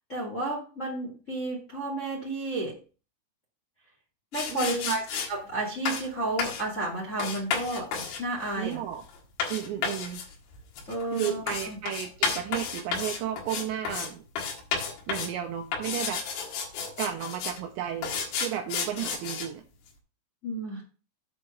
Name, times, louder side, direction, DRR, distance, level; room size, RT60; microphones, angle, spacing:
voice 1, 0.1-2.8 4.3-7.9 8.2-8.8 10.9-11.8 20.4-20.8, right 2 dB, 30° left, -2 dB, 1.5 m, -32 dB
sound 1, 4.3-5.3 5.9-6.1 6.4-6.7 7.2-14.1 14.4-15.4 15.7-17.6 18.0-19.5, left 5 dB, 75° left, 4.0 m, -32 dB
voice 2, 4.5-4.9 8.6-9.0 9.5-10.3 11.1-14.2 15.1-16.2 17.0-18.1 18.4-19.6, right 10 dB, 90° right, 5 dB, 2.6 m, -33 dB
8.7 x 4.8 x 5.7 m, 0.36 s
omnidirectional pair, 5.8 m